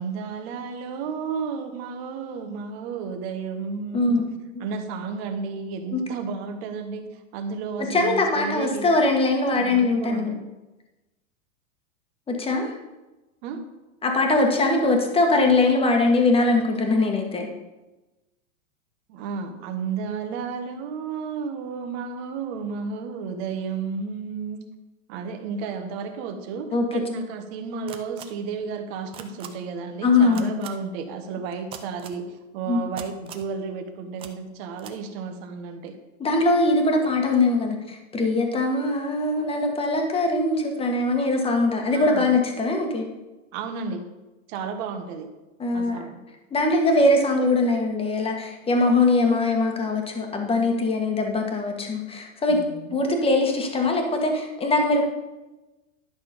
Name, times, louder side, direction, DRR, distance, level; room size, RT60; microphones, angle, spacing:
voice 1, 0.0-4.2 4.6-8.9 9.5-10.5 13.4-13.6 19.1-24.6 25.1-35.9 41.9-42.3 43.5-44.0 44.5-45.3 45.7-46.2 52.5-52.9, right 5 dB, 50° right, 7 dB, 1.5 m, -32 dB
voice 2, 3.9-4.3 5.9-6.0 7.9-10.3 12.3-12.7 14.0-17.5 26.7-26.9 30.0-30.6 32.7-32.8 36.2-43.1 45.6-46.0 46.5-52.6 52.9-55.0, left 2 dB, 15° left, 3 dB, 1.5 m, -22 dB
sound 1, 27.9-28.2 29.1-29.5 30.3-30.7 31.7-32.2 33.0-33.5 34.2-34.3 34.8-34.9, right 9 dB, 15° right, 0.4 m, -39 dB
11.5 x 6.1 x 5.3 m, 1.1 s
supercardioid pair, 140°, 42 cm